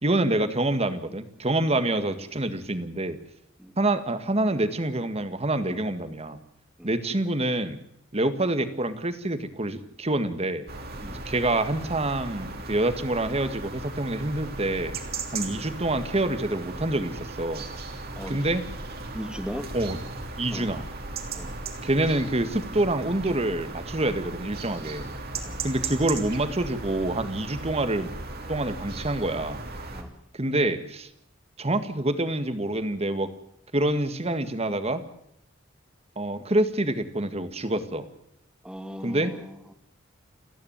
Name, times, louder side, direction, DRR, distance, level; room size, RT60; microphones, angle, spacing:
voice 1, 0.0-3.2 3.8-6.4 6.8-7.8 8.1-10.7 11.3-15.0 15.3-17.6 18.3-18.6 19.7-20.0 20.4-20.9 21.8-25.1 25.6-28.1 28.5-29.6 30.4-31.1 31.6-33.3 33.7-35.0 36.2-38.1 39.0-39.3, right 1 dB, 35° right, 10 dB, 1.8 m, -26 dB
sound 1, 10.7-30.0, right 3 dB, 55° right, 3.2 m, -37 dB
voice 2, 18.1-18.4 19.1-19.7 20.5-20.7 21.3-21.5 25.4-25.6 29.9-30.1 38.6-39.7, equal, 5° right, 7 dB, 2.2 m, -38 dB
29.5 x 10.5 x 8.9 m, 0.76 s
head